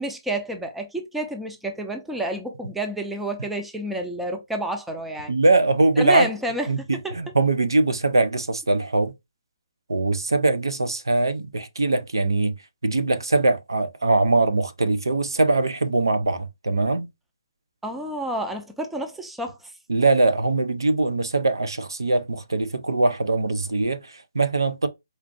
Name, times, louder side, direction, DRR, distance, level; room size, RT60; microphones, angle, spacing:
voice 1, 0.0-5.3 6.0-6.7 7.0-7.2 17.8-19.7, right 1 dB, 5° right, 0.5 m, -29 dB
voice 2, 5.3-6.3 6.7-9.1 9.9-12.5 12.8-17.1 19.9-24.9, right 2 dB, 80° right, 0.6 m, -22 dB
4.3 x 2.5 x 2.4 m
figure-of-eight pair, 145°, 2 cm